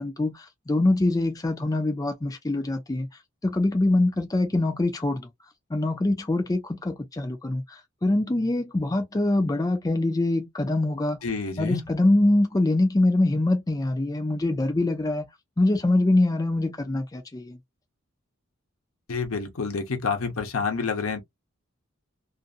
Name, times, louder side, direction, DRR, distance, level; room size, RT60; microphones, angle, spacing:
voice 1, 0.0-3.1 3.4-5.3 5.7-11.2 11.6-15.3 15.6-17.6, left 2 dB, 15° left, 0.4 m, -24 dB
voice 2, 11.2-11.8 19.1-21.2, left 4 dB, 85° left, 0.9 m, -28 dB
2.6 x 2.5 x 2.4 m
head